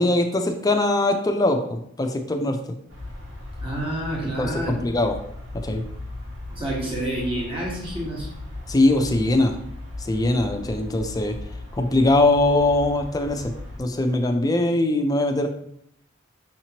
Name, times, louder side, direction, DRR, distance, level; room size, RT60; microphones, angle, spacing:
voice 1, 0.0-2.7 4.4-5.1 5.6-5.8 8.7-9.5 10.0-11.4 11.7-13.5 13.8-15.5, left 2 dB, 20° left, 5 dB, 0.4 m, -21 dB
sound 1, 2.9-13.8, left 2 dB, 85° right, 1.7 m, -37 dB
voice 2, 3.6-4.8 6.5-8.3, right 1 dB, 25° right, -4 dB, 1.2 m, -29 dB
5.8 x 3.0 x 2.8 m, 0.72 s
head